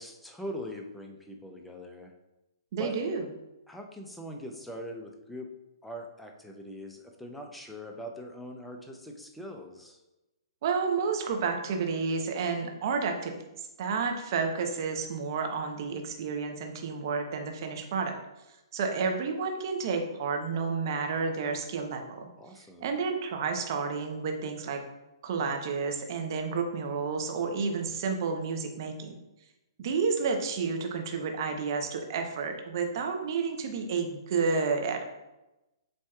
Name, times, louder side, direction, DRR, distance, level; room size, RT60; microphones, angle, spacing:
voice 1, 0.0-2.1 2.8-3.0 3.7-5.5 5.8-10.0 22.4-22.9, equal, 5° left, 2 dB, 0.6 m, -42 dB
voice 2, 2.7-3.2 10.6-18.2 18.7-22.3 22.8-24.8 25.2-29.1 29.8-35.0, right 5 dB, 50° right, 4 dB, 0.8 m, -30 dB
7.6 x 2.8 x 2.4 m, 0.99 s
hypercardioid pair, 135°, 3 cm